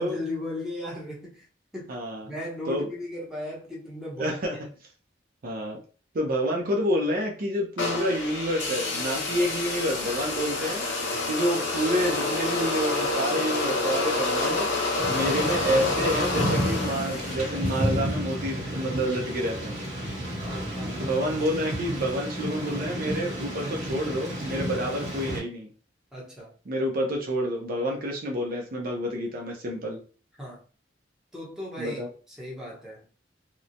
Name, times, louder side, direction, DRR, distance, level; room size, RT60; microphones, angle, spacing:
voice 1, 0.0-1.4 1.7-1.9 2.2-4.4 9.3-9.5 11.1-11.4 20.7-21.1 26.1-26.5 30.4-30.6 31.3-32.0 32.3-33.0, left 1 dB, 5° right, -6 dB, 0.7 m, -36 dB
voice 2, 1.9-2.3 2.7-2.9 4.2-4.6 5.4-5.8 6.1-10.8 11.3-14.7 15.1-19.7 21.0-25.7 26.7-30.0 31.8-32.1, equal, 50° right, 0 dB, 0.5 m, -28 dB
sound 1, 7.8-18.0, left 2 dB, 75° left, 0.7 m, -28 dB
Thunder / Rain, 15.0-25.4, equal, 35° right, 1.3 m, -31 dB
2.9 x 2.1 x 2.5 m, 0.39 s
head